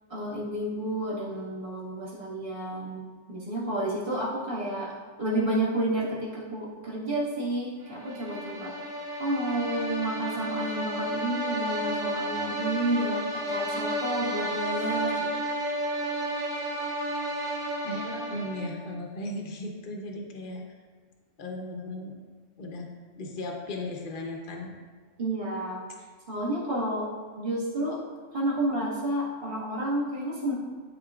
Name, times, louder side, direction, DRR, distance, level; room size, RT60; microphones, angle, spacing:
voice 1, 0.1-3.0 3.3-8.7 9.2-15.3 17.8-17.9 25.2-25.8 26.3-28.0 28.3-30.5, right 1 dB, 45° right, -7 dB, 1.9 m, -30 dB
sound 1, 7.9-18.9, right 1 dB, 80° right, 1.3 m, -32 dB
voice 2, 17.9-20.6 21.4-22.1 22.6-22.9 23.2-24.7, left 1 dB, 45° left, 0 dB, 0.9 m, -36 dB
11.5 x 4.1 x 2.4 m, 1.5 s
omnidirectional pair, 1.3 m